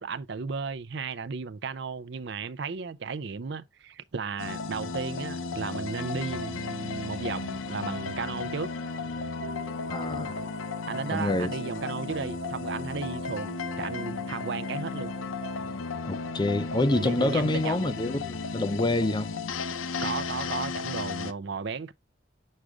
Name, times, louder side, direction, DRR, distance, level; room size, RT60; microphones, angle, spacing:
voice 1, 0.0-8.7 10.9-15.1 17.0-17.9 20.0-21.9, right 5 dB, 55° right, 0.5 m, -34 dB
sound 1, 4.4-21.3, left 4 dB, 80° left, 0.7 m, -34 dB
sound 2, 5.4-17.3, right 5 dB, 80° right, 1.0 m, -45 dB
voice 2, 9.9-10.4 11.1-11.5 16.0-19.3, left 2 dB, 20° left, 0.5 m, -27 dB
6.5 x 4.8 x 3.6 m
head